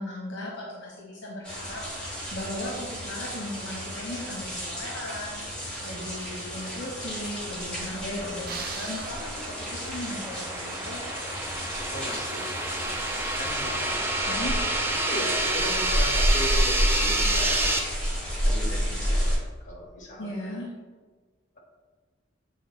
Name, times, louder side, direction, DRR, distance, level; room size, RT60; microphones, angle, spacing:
voice 1, 0.0-5.5 5.8-11.0 14.3-14.5 20.2-20.7, left 1 dB, 60° left, -3 dB, 1.1 m, -37 dB
sound 1, 1.4-19.4, equal, 5° left, 1.9 m, -31 dB
sound 2, 7.4-17.8, right 2 dB, 10° right, 0.5 m, -29 dB
sound 3, 8.5-10.0, right 5 dB, 50° right, 0.7 m, -40 dB
voice 2, 11.9-13.0 13.3-17.8 18.4-20.7, left 1 dB, 40° left, -1 dB, 1.5 m, -37 dB
7.9 x 4.1 x 3.2 m, 1.4 s
head